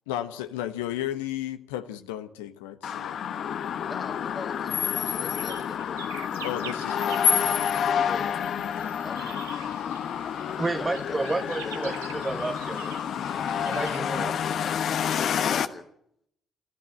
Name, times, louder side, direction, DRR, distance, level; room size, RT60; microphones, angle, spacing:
voice 1, 0.1-3.8 6.4-7.8, left 12 dB, 80° left, 1.1 m, -34 dB
sound 1, 2.8-15.7, left 8 dB, 60° left, 1.2 m, -28 dB
voice 2, 3.8-6.4 8.0-8.4 9.0-9.5 10.6-11.8 14.0-15.9, left 4 dB, 35° left, 2.2 m, -43 dB
sound 2, 5.0-14.0, right 10 dB, 85° right, 1.0 m, -46 dB
voice 3, 10.6-13.0 13.6-14.4, right 3 dB, 25° right, 1.0 m, -31 dB
26.0 x 14.0 x 7.7 m
hypercardioid pair, 50°, 0 cm